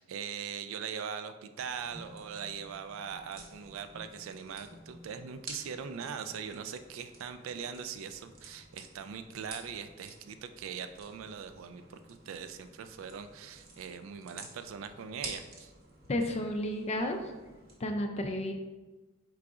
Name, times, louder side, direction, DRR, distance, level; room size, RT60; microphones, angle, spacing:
voice 1, 0.0-12.0 12.3-15.7, right 7 dB, 70° right, 10 dB, 0.3 m, -41 dB
sound 1, 1.6-17.7, right 2 dB, 45° right, 0.8 m, -51 dB
voice 2, 16.1-17.2 17.8-18.5, left 1 dB, 30° left, 4 dB, 0.4 m, -32 dB
4.6 x 3.8 x 2.4 m, 1.2 s
head